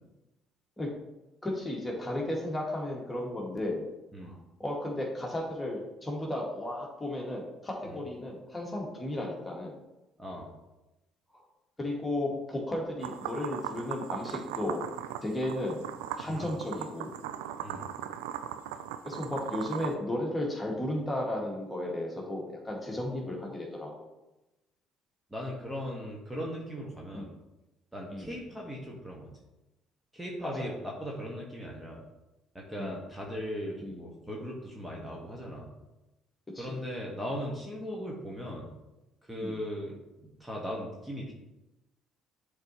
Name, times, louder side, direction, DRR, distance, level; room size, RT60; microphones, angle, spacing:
voice 1, 1.4-3.9 4.2-9.8 11.3-11.4 11.8-14.8 15.2-15.9 16.1-17.1 19.0-24.1 27.1-27.3 28.1-28.3 30.4-30.7 32.8-32.9 33.8-34.0 36.5-36.8 39.4-39.6, left 1 dB, 15° left, -2 dB, 2.0 m, -34 dB
voice 2, 10.2-10.5 16.2-16.4 17.6-17.9 25.3-27.3 27.9-29.3 30.1-32.0 32.5-35.7 36.6-38.7 39.3-39.9 40.2-41.3, equal, 10° right, -2 dB, 1.7 m, -38 dB
sound 1, 13.0-19.9, right 10 dB, 75° right, 0.3 m, -39 dB
11.0 x 4.0 x 3.1 m, 1.0 s
figure-of-eight pair, 50°, 0 cm